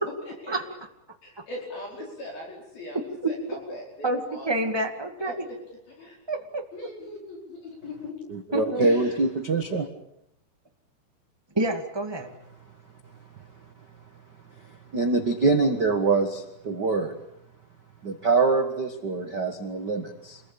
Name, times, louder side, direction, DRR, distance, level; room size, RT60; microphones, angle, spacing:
voice 1, 0.2-0.5 1.2-3.0 3.3-4.5 5.2-5.6 6.0-6.2 6.7-8.1 8.8-9.2, left 2 dB, 60° left, 0 dB, 6.8 m, -39 dB
voice 2, 4.0-5.5 6.3-6.6 8.5-8.9 11.5-12.3, right 1 dB, 25° right, 3 dB, 0.6 m, -28 dB
voice 3, 8.3-9.9 14.9-17.1 18.0-20.4, right 3 dB, 75° right, 5 dB, 0.9 m, -24 dB
28.0 x 21.5 x 8.8 m, 0.78 s
omnidirectional pair, 4.9 m